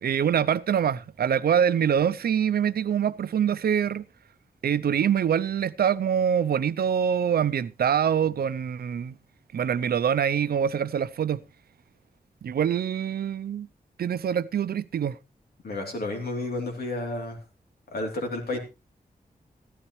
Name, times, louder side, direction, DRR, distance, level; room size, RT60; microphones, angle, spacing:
voice 1, 0.0-4.0 4.6-9.2 9.5-11.4 12.4-13.7 14.0-15.2, right 8 dB, 80° right, 0.5 m, -24 dB
voice 2, 15.6-17.4 17.9-18.6, left 2 dB, 85° left, 3.2 m, -31 dB
14.5 x 13.0 x 3.1 m
wide cardioid pair, 140°, 16 cm